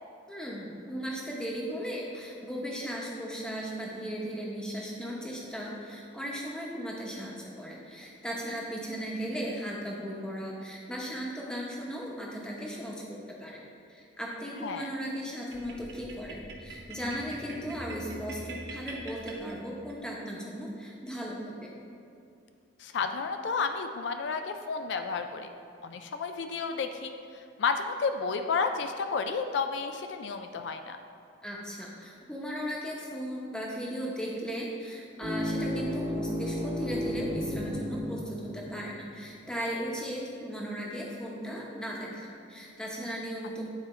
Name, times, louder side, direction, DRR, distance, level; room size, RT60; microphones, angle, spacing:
voice 1, 0.3-13.0 13.4-13.6 13.9-21.7 31.4-43.6, equal, 5° left, -3 dB, 0.9 m, -37 dB
sound 1, 15.5-20.0, right 1 dB, 65° right, 1.1 m, -43 dB
voice 2, 22.8-25.5 25.8-31.0, left 5 dB, 65° left, 7 dB, 0.3 m, -31 dB
sound 2, 35.2-39.1, left 1 dB, 50° right, 1.4 m, -33 dB
9.0 x 4.3 x 4.3 m, 2.5 s
head